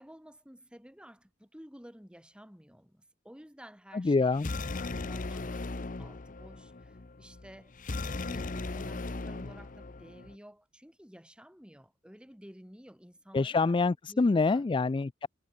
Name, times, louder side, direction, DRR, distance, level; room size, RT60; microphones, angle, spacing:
voice 1, 0.0-13.7 14.1-14.7, equal, 5° right, 4.4 m, -53 dB
voice 2, 3.9-4.5 13.3-15.3, left 3 dB, 25° left, 0.4 m, -26 dB
sound 1, 4.3-10.3, left 3 dB, 45° left, 0.8 m, -38 dB
head